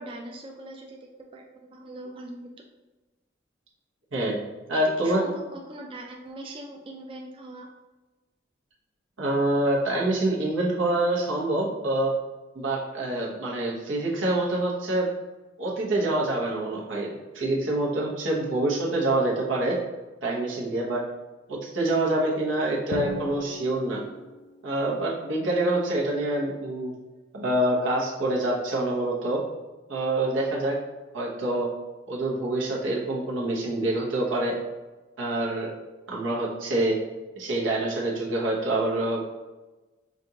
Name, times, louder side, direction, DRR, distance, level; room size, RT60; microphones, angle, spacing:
voice 1, 0.0-2.5 4.7-7.7, right 1 dB, 30° right, 1 dB, 0.3 m, -41 dB
voice 2, 4.7-5.2 9.2-12.1 12.5-15.1 15.6-19.8 20.2-21.0 21.5-24.0 24.6-26.9 27.3-29.4 29.9-30.8 31.1-31.7 32.1-34.5 35.2-35.7 36.1-37.0 37.4-39.3, right 1 dB, 90° right, -4 dB, 1.0 m, -26 dB
Drum, 22.9-24.6, left 4 dB, 60° left, 0.4 m, -36 dB
5.2 x 2.5 x 2.8 m, 1.2 s
head